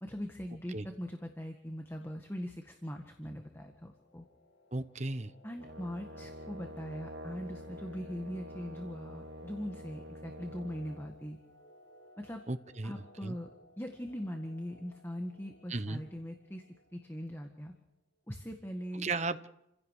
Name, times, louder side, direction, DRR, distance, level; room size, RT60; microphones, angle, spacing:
voice 1, 0.0-4.3 5.4-11.4 12.2-12.4 12.8-13.5 13.8-16.6 16.9-17.7 18.3-19.1, equal, 10° left, 4 dB, 1.7 m, -41 dB
sound 1, 3.1-17.6, left 1 dB, 70° left, 6.5 m, -59 dB
voice 2, 4.7-5.3 12.5-13.3 15.7-16.0 18.9-19.5, right 3 dB, 35° right, 11 dB, 1.0 m, -35 dB
Brass instrument, 5.6-11.1, equal, 90° right, 1.6 m, -47 dB
29.0 x 16.5 x 6.7 m, 0.87 s
head